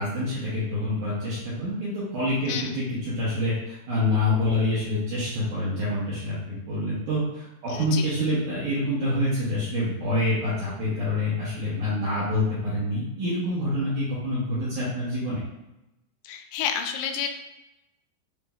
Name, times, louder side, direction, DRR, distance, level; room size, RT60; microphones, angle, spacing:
voice 1, 0.0-15.4, left 1 dB, 75° right, -9 dB, 1.8 m, -27 dB
voice 2, 7.7-8.1 16.2-17.3, left 8 dB, 90° left, 5 dB, 2.7 m, -30 dB
7.3 x 3.0 x 2.3 m, 0.94 s
omnidirectional pair, 4.9 m